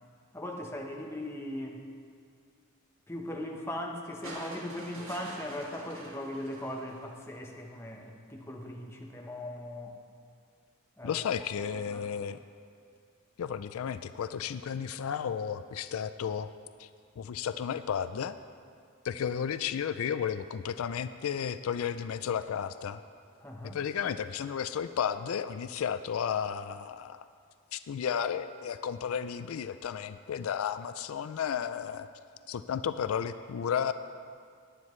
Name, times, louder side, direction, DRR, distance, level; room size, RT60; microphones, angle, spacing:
voice 1, 0.3-1.8 3.1-10.0 11.0-11.3 11.9-12.1 23.4-23.8, left 1 dB, 10° left, 0 dB, 1.0 m, -39 dB
sound 1, 4.2-7.5 8.9-9.0, right 1 dB, 70° right, 1.9 m, -46 dB
voice 2, 11.0-12.4 13.4-16.5 16.8-16.9 17.2-18.4 19.0-23.0 23.7-27.3 27.7-32.1 32.5-33.9, left 8 dB, 80° left, 12 dB, 0.4 m, -33 dB
18.0 x 9.8 x 3.2 m, 2.2 s
head